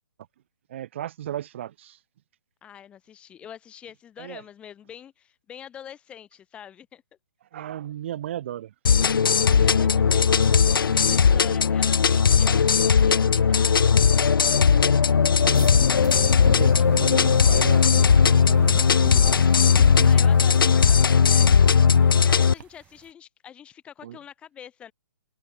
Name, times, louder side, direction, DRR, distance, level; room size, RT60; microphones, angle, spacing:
voice 1, 0.7-2.0 4.2-4.4 7.5-8.7 11.3-11.6 15.2-15.7 16.4-19.0 24.0-24.2, right 11 dB, 35° right, 1.2 m, -36 dB
voice 2, 2.6-7.0 9.1-10.3 10.8-14.0 20.0-21.6 22.2-24.9, left 9 dB, 10° left, 3.8 m, -44 dB
sound 1, 8.9-22.5, left 6 dB, 80° left, 1.1 m, -18 dB
sound 2, 15.4-23.1, right 11 dB, 10° right, 4.3 m, -41 dB
sound 3, 15.6-22.6, right 8 dB, 50° right, 7.4 m, -52 dB
hypercardioid pair, 170°, 11 cm